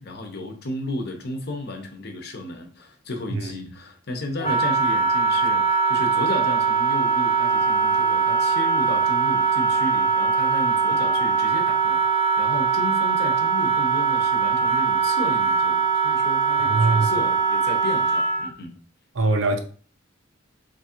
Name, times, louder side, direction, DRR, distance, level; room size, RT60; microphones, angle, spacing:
voice 1, 0.0-18.7, left 2 dB, 55° left, 0.8 m, -33 dB
Wind instrument woodwind instrument, 4.4-18.5, right 5 dB, 25° left, 0.7 m, -21 dB
voice 2, 16.6-17.1 19.1-19.6, right 3 dB, 75° right, 0.6 m, -22 dB
3.1 x 2.4 x 4.3 m
head